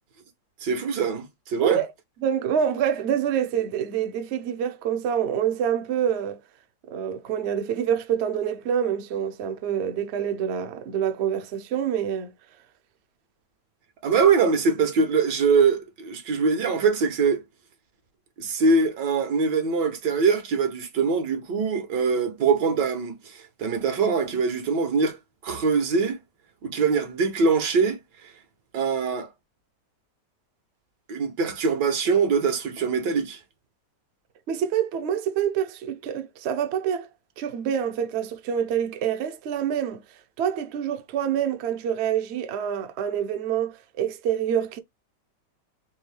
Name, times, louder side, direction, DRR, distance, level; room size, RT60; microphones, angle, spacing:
voice 1, 0.6-1.8 14.0-17.4 18.4-25.2 25.4-26.2 26.6-28.0 28.7-29.3 31.1-33.4, right 5 dB, 80° right, 1.8 m, -23 dB
voice 2, 2.2-6.4 6.9-12.3 34.5-37.1 37.4-40.0 40.4-44.8, right 9 dB, 60° right, 0.7 m, -26 dB
4.3 x 2.7 x 3.2 m
omnidirectional pair, 1.9 m